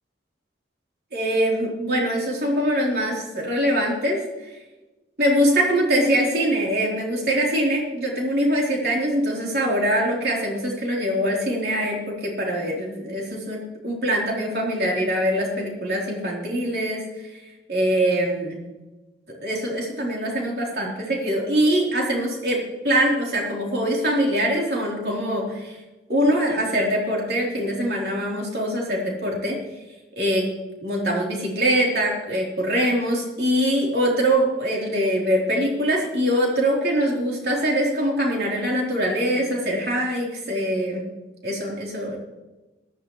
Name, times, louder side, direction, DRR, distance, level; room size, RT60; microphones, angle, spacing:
voice 1, 1.1-4.2 5.2-17.1 17.3-17.4 17.7-18.6 19.4-25.8 26.1-29.6 30.2-30.5 30.8-41.0 41.4-42.2, equal, 55° right, -2 dB, 3.8 m, -23 dB
18.5 x 12.5 x 3.2 m, 1.1 s
head